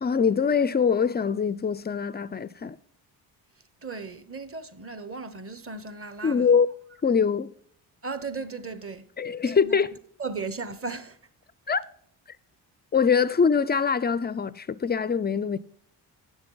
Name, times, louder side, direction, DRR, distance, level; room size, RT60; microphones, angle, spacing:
voice 1, 0.0-2.8 6.2-6.7 7.0-7.5 9.2-9.9 11.7-11.8 12.9-15.6, left 6 dB, 25° left, 0.3 m, -23 dB
voice 2, 3.8-6.5 8.0-9.1 9.6-9.9 10.2-11.2, right 4 dB, 30° right, 1.0 m, -36 dB
9.5 x 6.9 x 3.9 m
supercardioid pair, 65°, 46 cm